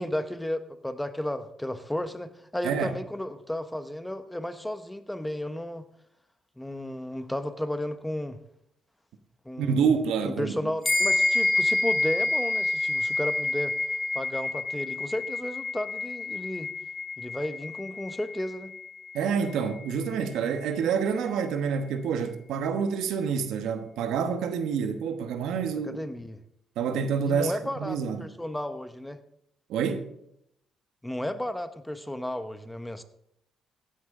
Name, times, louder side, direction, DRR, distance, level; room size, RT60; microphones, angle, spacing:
voice 1, 0.0-5.8 6.6-8.4 9.4-9.9 10.2-13.7 14.1-16.7 17.2-18.7 25.8-26.4 27.2-29.2 31.0-33.0, left 1 dB, 5° left, 0.9 m, -33 dB
voice 2, 2.6-3.0 9.6-10.7 19.1-26.0 26.8-27.5 27.8-28.3 29.7-30.1, right 6 dB, 85° right, 1.2 m, -27 dB
sound 1, 10.8-20.6, left 2 dB, 25° left, 3.2 m, -29 dB
15.5 x 11.0 x 3.8 m
cardioid pair, 90°, 0 cm